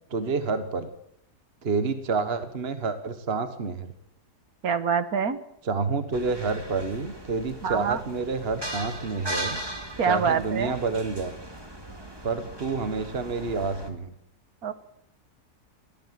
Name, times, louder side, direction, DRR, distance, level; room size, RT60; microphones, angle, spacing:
voice 1, 0.1-0.9 1.6-3.9 5.6-9.6 10.1-11.3 12.2-14.1, right 4 dB, 40° right, 9 dB, 1.5 m, -28 dB
voice 2, 4.6-5.4 7.6-8.0 10.0-10.7 14.6-14.7, right 6 dB, 65° right, 11 dB, 1.9 m, -25 dB
sound 1, 6.1-13.9, right 1 dB, 15° right, 2.3 m, -38 dB
24.5 x 16.0 x 7.6 m, 0.75 s
omnidirectional pair, 1.6 m